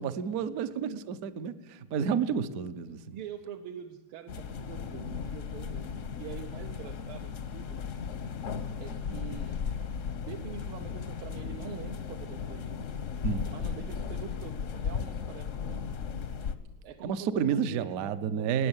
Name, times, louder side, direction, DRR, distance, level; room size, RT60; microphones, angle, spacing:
voice 1, 0.0-3.2 9.1-9.2 13.2-13.5 17.0-18.7, right 7 dB, 65° right, 12 dB, 0.9 m, -31 dB
voice 2, 3.1-7.8 8.8-9.6 10.2-12.8 13.5-15.9 16.8-18.7, right 8 dB, 80° right, 4 dB, 1.6 m, -45 dB
sound 1, 4.3-16.5, left 6 dB, 70° left, 0.7 m, -36 dB
20.0 x 9.5 x 7.2 m, 1.2 s
omnidirectional pair, 2.3 m